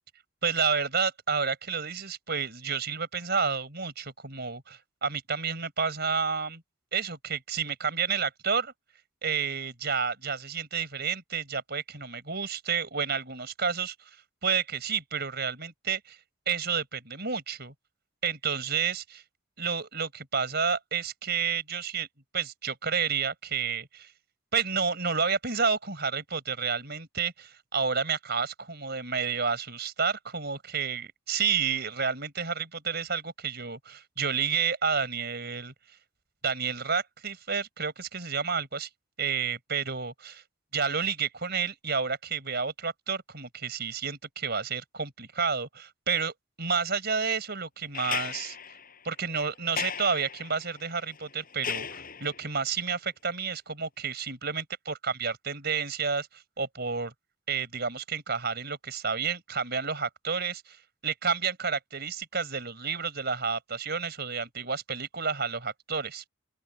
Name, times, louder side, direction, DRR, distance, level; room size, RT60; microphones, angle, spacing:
voice 1, 0.4-6.6 6.9-8.7 9.2-14.0 14.4-16.2 16.5-17.7 18.2-19.2 19.6-22.1 22.3-24.1 24.5-35.7 36.4-38.9 39.2-40.4 40.7-48.6 49.0-57.1 57.5-60.8 61.0-66.2, right 5 dB, 50° right, 5.0 m, -30 dB
sound 1, 47.9-52.6 54.1-54.2, left 7 dB, 40° left, 7.2 m, -37 dB
open air
head